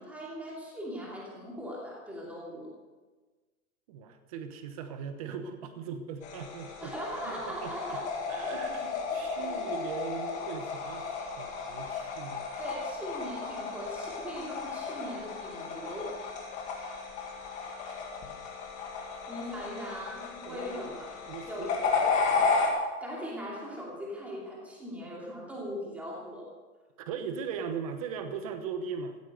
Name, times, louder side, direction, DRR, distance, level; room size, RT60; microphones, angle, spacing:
voice 1, 0.0-2.7 6.8-8.1 8.4-8.6 9.1-9.6 12.6-16.2 19.3-21.2 21.5-22.1 23.0-26.5, equal, 5° right, -4 dB, 2.6 m, -40 dB
voice 2, 3.9-6.9 7.3-8.0 8.3-12.4 17.6-18.1 20.4-21.8 27.0-29.2, right 6 dB, 25° right, 8 dB, 1.1 m, -39 dB
sound 1, 6.2-22.7, left 4 dB, 15° left, 2.1 m, -34 dB
15.0 x 13.5 x 6.7 m, 1.3 s
hypercardioid pair, 175°, 44 cm